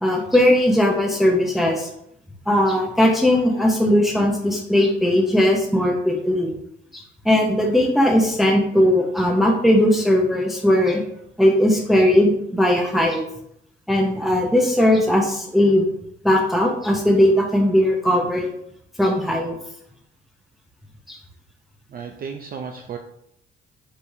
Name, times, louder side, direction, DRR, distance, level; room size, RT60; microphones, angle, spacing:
voice 1, 0.0-1.9 2.5-6.5 6.9-11.0 11.4-13.2 13.9-15.9 16.2-18.5 19.0-19.5 21.1-21.2, left 1 dB, ahead, 0 dB, 0.7 m, -18 dB
voice 2, 21.9-23.0, right 6 dB, 50° right, 3 dB, 0.5 m, -33 dB
4.7 x 3.4 x 2.7 m, 0.75 s
cardioid pair, 90°, 20 cm